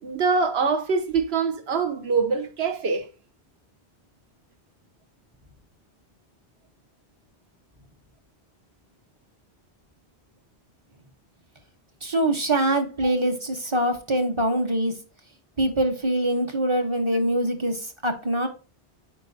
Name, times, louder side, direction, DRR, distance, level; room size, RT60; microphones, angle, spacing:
voice 1, 0.0-3.1 13.0-13.1, right 5 dB, 70° right, 1.3 m, -24 dB
voice 2, 12.0-14.9 15.6-18.5, right 1 dB, 30° right, 1.0 m, -24 dB
8.9 x 4.7 x 2.7 m
omnidirectional pair, 1.1 m